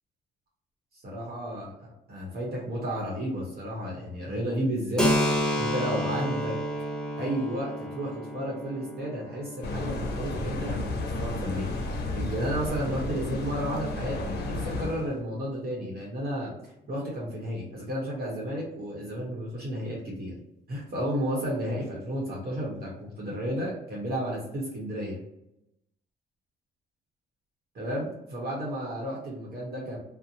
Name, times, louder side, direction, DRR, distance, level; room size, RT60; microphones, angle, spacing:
voice 1, 1.0-5.1 5.6-6.6 7.2-11.8 12.1-16.5 16.9-20.4 20.7-25.2 27.7-30.0, equal, 50° right, -4 dB, 0.9 m, -32 dB
Keyboard (musical), 5.0-12.3, equal, 5° left, 0.6 m, -31 dB
sound 1, 9.6-15.1, left 2 dB, 55° left, 0.6 m, -32 dB
2.6 x 2.0 x 2.6 m, 0.84 s
cardioid pair, 90°, 20 cm